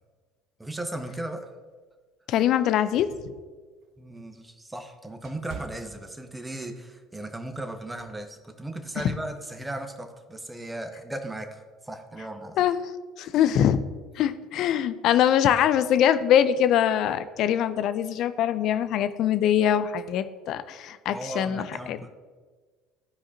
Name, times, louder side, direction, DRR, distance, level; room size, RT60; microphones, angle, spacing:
voice 1, 0.6-1.5 4.0-12.7 21.1-22.1, right 1 dB, 10° right, 6 dB, 1.0 m, -36 dB
voice 2, 2.3-3.1 12.6-12.8 13.2-13.8 14.2-22.0, left 10 dB, 55° left, 13 dB, 0.4 m, -23 dB
sound 1, 3.0-6.7 7.1-7.4 8.0-8.2, right 6 dB, 55° right, 0.6 m, -46 dB
14.0 x 4.8 x 2.7 m, 1.4 s
hypercardioid pair, 65°, 0 cm